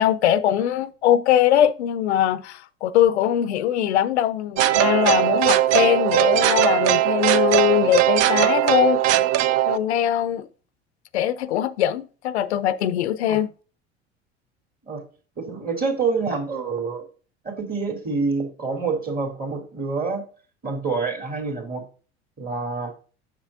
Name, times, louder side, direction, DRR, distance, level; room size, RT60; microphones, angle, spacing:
voice 1, 0.0-9.0 9.7-10.5 11.1-13.5, left 11 dB, 80° left, 0.5 m, -21 dB
sound 1, 4.6-9.8, right 13 dB, 50° right, 0.5 m, -19 dB
voice 2, 15.4-17.1 17.4-20.2 20.6-21.8 22.4-22.9, right 4 dB, 30° right, 2.2 m, -27 dB
7.3 x 6.2 x 2.4 m
hypercardioid pair, 70°, 33 cm